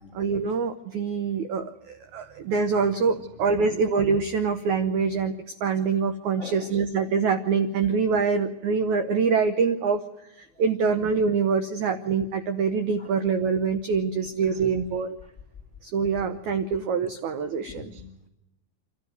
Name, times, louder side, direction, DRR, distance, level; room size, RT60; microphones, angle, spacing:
voice 1, 0.1-10.0 10.6-15.2 15.8-17.9, right 5 dB, 90° right, 9 dB, 1.6 m, -25 dB
voice 2, 6.4-6.8 13.0-13.1 14.3-14.9 17.6-18.3, left 4 dB, 65° left, 3 dB, 0.7 m, -44 dB
27.0 x 13.0 x 9.4 m, 0.88 s
omnidirectional pair, 4.8 m